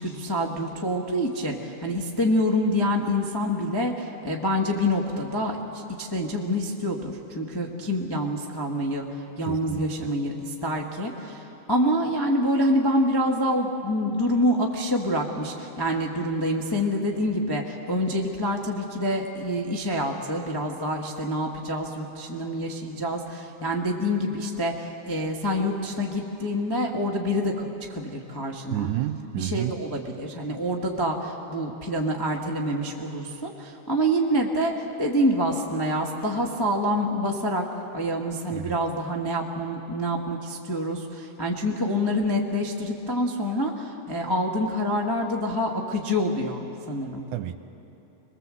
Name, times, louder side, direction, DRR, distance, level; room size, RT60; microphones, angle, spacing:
voice 1, 0.0-9.1 9.4-11.4 11.7-28.9 29.4-34.7 35.0-46.6 46.9-47.2, equal, 20° left, -1 dB, 0.5 m, -26 dB
voice 2, 9.4-10.1 28.7-29.8 38.5-38.8 47.3-47.6, right 13 dB, 80° right, 10 dB, 2.1 m, -30 dB
26.5 x 20.5 x 7.8 m, 2.9 s
omnidirectional pair, 3.7 m